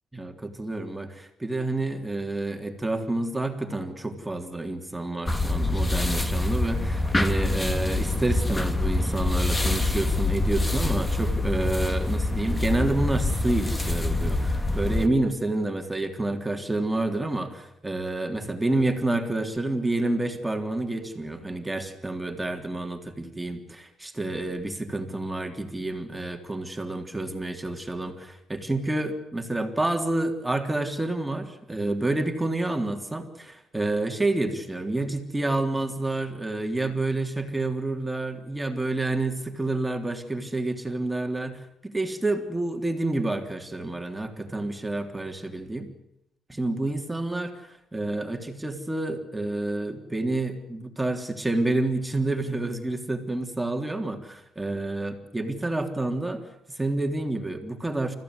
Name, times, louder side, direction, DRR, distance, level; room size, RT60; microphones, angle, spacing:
voice 1, 0.1-45.9 46.5-58.2, right 2 dB, 10° right, 4 dB, 3.5 m, -29 dB
sound 1, 5.3-15.1, left 2 dB, 15° left, 2.2 m, -25 dB
29.0 x 15.5 x 9.8 m, 0.81 s
cardioid pair, 90°, 0 cm